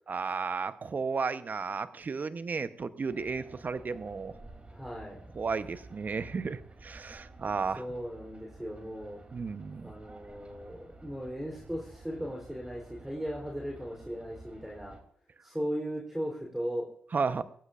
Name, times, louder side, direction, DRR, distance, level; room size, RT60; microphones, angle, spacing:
voice 1, 0.1-4.3 5.3-7.8 9.3-9.9 17.1-17.4, right 5 dB, 50° right, 13 dB, 0.9 m, -33 dB
sound 1, 3.1-15.0, right 2 dB, 30° right, 3.0 m, -52 dB
voice 2, 4.7-5.2 7.8-9.2 9.8-14.9 15.4-16.9, equal, 5° right, -1 dB, 3.5 m, -37 dB
18.0 x 15.5 x 2.5 m, 0.62 s
hypercardioid pair, 40°, 4 cm